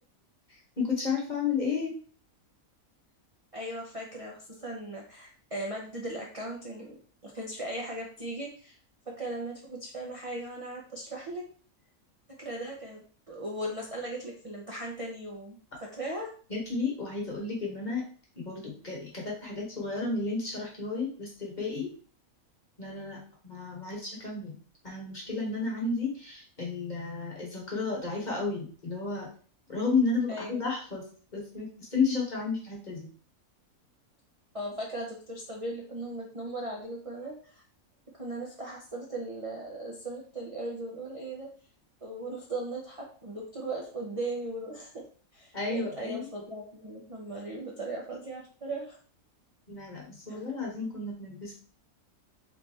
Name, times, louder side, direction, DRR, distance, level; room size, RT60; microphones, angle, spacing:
voice 1, 0.5-1.9 16.5-18.0 18.4-21.9 22.8-24.6 24.8-29.3 29.7-31.0 31.3-33.1 45.5-46.3 49.7-51.5, left 4 dB, 30° left, -3 dB, 1.4 m, -32 dB
voice 2, 3.5-7.0 7.2-8.8 9.1-11.4 12.4-16.3 30.3-30.6 34.5-37.6 38.1-41.5 42.0-45.0 45.3-49.0 50.3-50.4, right 1 dB, 35° right, -2 dB, 0.6 m, -38 dB
4.0 x 3.3 x 3.4 m, 0.42 s
omnidirectional pair, 1.5 m